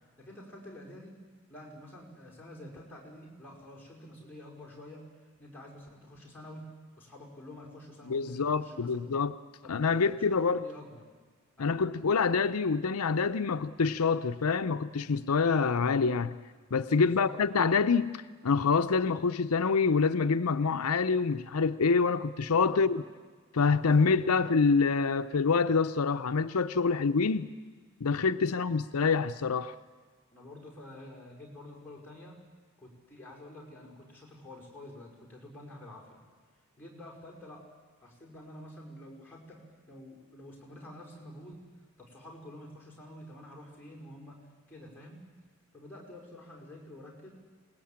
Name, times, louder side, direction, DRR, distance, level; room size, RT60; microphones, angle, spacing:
voice 1, 0.2-1.1 1.5-5.0 5.4-6.6 7.0-9.0 9.9-11.1 11.6-11.9 17.0-17.3 22.7-23.0 23.7-24.4 28.5-28.7 30.3-32.4 32.8-36.2 36.8-37.6 38.0-39.6 39.9-41.6 42.0-44.4 44.7-45.2 45.7-47.3, left 1 dB, 10° left, 5.2 m, -48 dB
voice 2, 8.1-9.3 9.7-10.7 11.6-16.4 16.7-23.0 23.5-27.5 28.0-29.7, left 5 dB, 85° left, 0.6 m, -26 dB
27.5 x 19.5 x 8.7 m
head